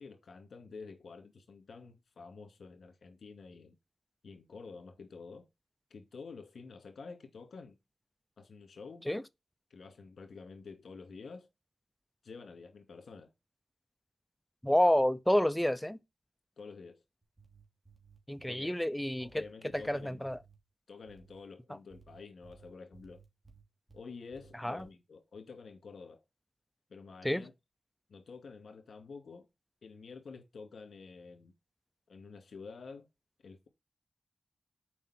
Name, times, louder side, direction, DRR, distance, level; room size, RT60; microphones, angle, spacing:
voice 1, 0.0-3.8 4.2-5.5 5.9-7.8 8.4-9.1 9.7-11.5 12.2-13.3 16.6-17.0 18.5-18.8 19.2-20.3 20.9-23.2 23.9-26.2 26.9-27.5 28.1-29.5 29.8-31.5 32.1-33.1 33.4-33.7, left 4 dB, 75° left, 2.3 m, -49 dB
voice 2, 14.6-16.0 18.3-19.4 19.7-20.4 24.6-24.9 27.2-27.4, left 1 dB, 5° left, 0.6 m, -29 dB
sound 1, 17.2-18.6 19.2-20.6 21.1-21.4 21.9-24.0 24.3-24.9, right 5 dB, 20° right, 2.8 m, -59 dB
7.2 x 5.2 x 4.4 m
cardioid pair, 75°, 0 cm